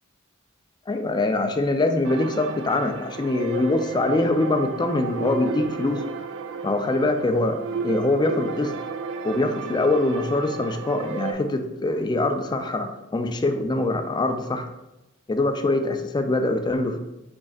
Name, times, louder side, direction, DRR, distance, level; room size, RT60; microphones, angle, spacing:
voice 1, 0.9-6.0 6.6-8.7 9.2-14.7 15.3-17.0, left 2 dB, 20° left, 7 dB, 0.4 m, -23 dB
sound 1, 2.0-11.3, right 5 dB, 60° right, 0.4 m, -33 dB
5.0 x 4.5 x 2.4 m, 0.95 s
head